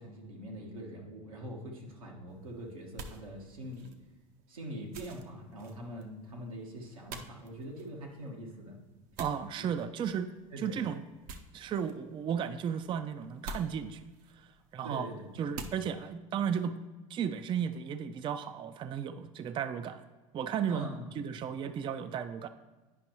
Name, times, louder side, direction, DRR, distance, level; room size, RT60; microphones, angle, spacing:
voice 1, 0.0-3.9 4.5-8.8 9.6-9.7 10.5-10.8 14.8-15.7 20.7-21.0, equal, 90° right, -1 dB, 1.3 m, -43 dB
sound 1, 2.3-16.1, right 3 dB, 55° right, 0.7 m, -50 dB
voice 2, 9.2-10.3 10.6-11.0 11.5-14.1 14.4-14.5 14.7-15.1 15.4-16.8 17.1-20.0 20.3-20.9 21.2-22.5, right 8 dB, 30° right, 11 dB, 0.3 m, -34 dB
9.8 x 5.2 x 3.0 m, 1.2 s
hypercardioid pair, 85°, 17 cm